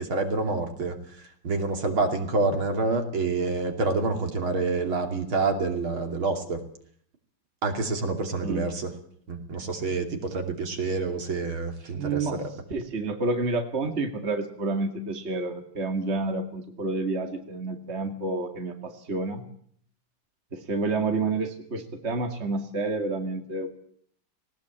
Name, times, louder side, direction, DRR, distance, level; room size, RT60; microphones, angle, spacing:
voice 1, 0.0-6.6 7.6-8.9 9.3-12.4, right 3 dB, 65° right, 5 dB, 3.5 m, -27 dB
voice 2, 11.9-12.4 12.7-19.4 20.5-23.7, right 3 dB, 30° right, 5 dB, 2.4 m, -29 dB
19.0 x 18.5 x 8.7 m, 0.62 s
omnidirectional pair, 2.4 m